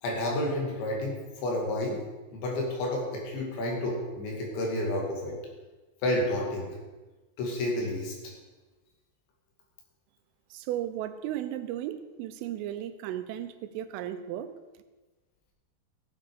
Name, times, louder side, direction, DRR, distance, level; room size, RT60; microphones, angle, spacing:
voice 1, 0.0-2.0 2.3-5.4 6.0-6.7 7.4-8.1, left 1 dB, 70° left, -1 dB, 4.6 m, -30 dB
voice 2, 10.5-14.5, right 12 dB, 90° right, 10 dB, 3.3 m, -35 dB
15.5 x 8.2 x 4.9 m, 1.2 s
omnidirectional pair, 5.6 m